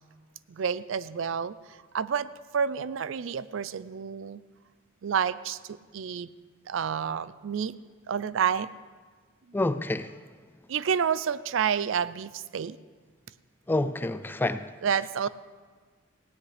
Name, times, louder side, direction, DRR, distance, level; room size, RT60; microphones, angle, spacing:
voice 1, 0.5-1.6 1.9-4.4 5.0-6.3 6.7-7.7 8.1-8.7 10.7-12.8 14.8-15.3, right 7 dB, 65° right, 17 dB, 0.4 m, -29 dB
voice 2, 9.5-10.2 13.7-15.0, left 2 dB, 10° left, 12 dB, 0.3 m, -28 dB
18.0 x 17.0 x 3.3 m, 1.5 s
head